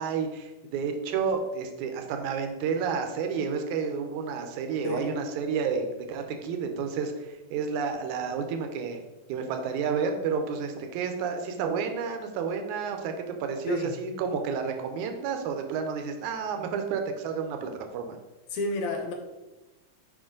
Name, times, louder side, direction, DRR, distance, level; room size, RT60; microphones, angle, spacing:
voice 1, 0.0-9.0 9.3-13.1 13.4-18.2, right 6 dB, 75° right, 5 dB, 2.0 m, -30 dB
voice 2, 18.5-19.1, left 2 dB, 75° left, 4 dB, 1.8 m, -30 dB
6.3 x 5.2 x 3.7 m, 1.1 s
omnidirectional pair, 3.7 m